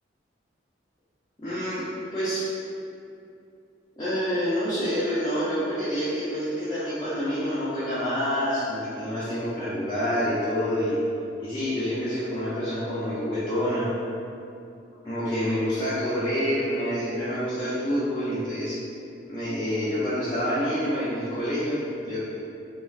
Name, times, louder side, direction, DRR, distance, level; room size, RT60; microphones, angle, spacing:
voice 1, 1.4-2.5 4.0-11.0 11.4-13.9 15.0-18.8 19.3-22.2, equal, 20° left, -13 dB, 0.4 m, -27 dB
2.4 x 2.3 x 3.1 m, 2.6 s
head